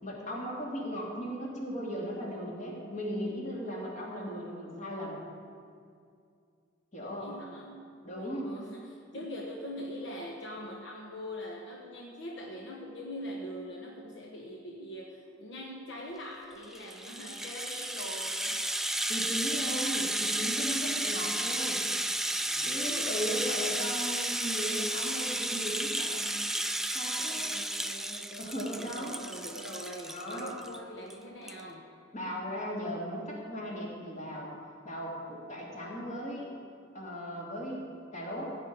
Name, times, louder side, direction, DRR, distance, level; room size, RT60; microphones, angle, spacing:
voice 1, 0.0-5.2 6.9-7.3 8.0-8.5 19.1-21.8 22.6-26.3 26.9-27.5 28.4-29.2 30.1-30.6 32.1-34.5 34.8-36.5 36.9-37.8 38.1-38.6, equal, 40° left, -2 dB, 2.6 m, -37 dB
voice 2, 7.0-7.9 8.1-18.6 22.5-23.1 27.2-31.9, equal, 65° left, -1 dB, 1.2 m, -43 dB
Rattle (instrument), 16.6-30.8 31.1-31.2 31.5-31.6, right 1 dB, ahead, 0.4 m, -33 dB
16.0 x 5.4 x 9.4 m, 2.4 s
head